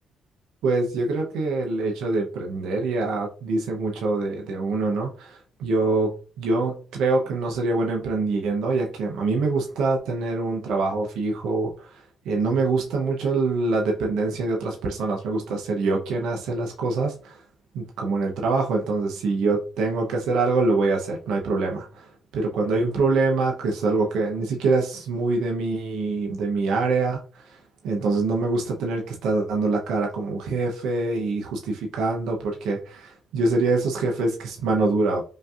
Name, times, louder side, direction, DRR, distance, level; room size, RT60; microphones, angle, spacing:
voice 1, 0.6-17.4 17.7-22.1 22.3-27.6 27.8-35.2, right 3 dB, 85° right, 0 dB, 0.7 m, -25 dB
5.1 x 2.7 x 2.4 m, 0.39 s
cardioid pair, 70°, 0 cm